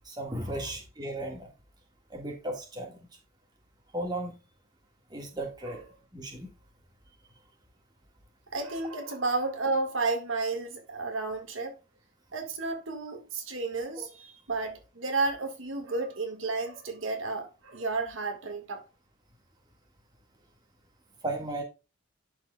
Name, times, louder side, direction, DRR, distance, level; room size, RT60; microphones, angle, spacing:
voice 1, 0.1-1.5 2.1-2.9 3.9-4.4 5.1-5.8 6.1-6.5 14.0-14.1 21.2-21.6, right 1 dB, 20° right, 1.7 m, -35 dB
voice 2, 8.5-11.8 12.3-18.8, right 3 dB, 75° right, 1.7 m, -32 dB
11.5 x 4.8 x 2.2 m
head